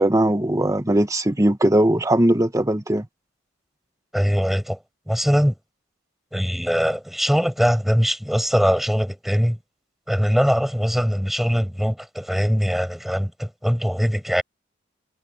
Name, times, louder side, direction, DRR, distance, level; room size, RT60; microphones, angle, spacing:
voice 1, 0.0-3.1, right 1 dB, 15° right, 1.4 m, -19 dB
voice 2, 4.1-4.8 5.1-5.6 6.3-9.6 10.1-14.4, equal, ahead, 6.3 m, -21 dB
head